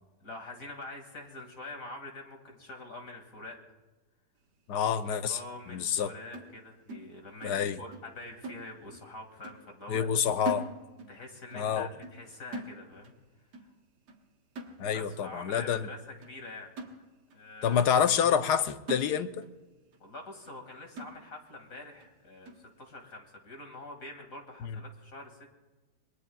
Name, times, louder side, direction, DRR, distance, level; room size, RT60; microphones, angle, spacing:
voice 1, 0.2-3.6 5.2-10.1 11.1-13.1 13.5-13.7 14.8-16.0 16.3-16.7 17.3-17.8 20.0-25.5, left 2 dB, 55° left, 2.7 m, -45 dB
voice 2, 4.7-5.4 5.7-6.1 7.4-7.8 9.9-10.7 11.5-11.9 14.8-15.9 17.6-19.4 24.6-24.8, left 8 dB, 90° left, 1.3 m, -27 dB
sound 1, 6.3-7.6 7.9-8.1 8.4-9.1 9.4-9.7 9.9-11.2 11.5-11.7 12.0-12.3 12.5-13.2 13.5-13.8 14.1-14.3 14.6-15.2 15.7-15.8 16.2-16.4 16.8-17.4 17.8-18.0 18.4-18.6 18.9-19.6 19.9-20.0 20.4-20.6 21.0-21.5 22.0-22.1 22.5-22.7, right 1 dB, 85° right, 2.0 m, -42 dB
27.0 x 21.5 x 2.4 m
omnidirectional pair, 1.7 m